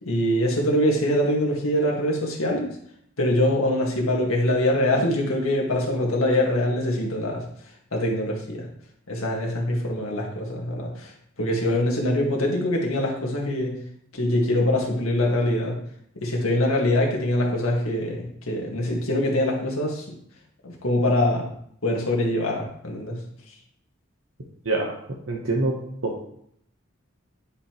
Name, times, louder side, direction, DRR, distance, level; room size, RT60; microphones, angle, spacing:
voice 1, 0.0-2.7 3.2-7.4 7.9-8.6 9.1-11.1 11.4-13.7 14.1-15.8 16.2-20.0 20.6-21.5 21.8-23.2, left 1 dB, 90° left, -1 dB, 1.8 m, -23 dB
voice 2, 24.6-25.0 25.3-25.8 26.0-26.2, right 2 dB, 70° right, -1 dB, 1.0 m, -25 dB
9.8 x 5.3 x 3.0 m, 0.68 s
head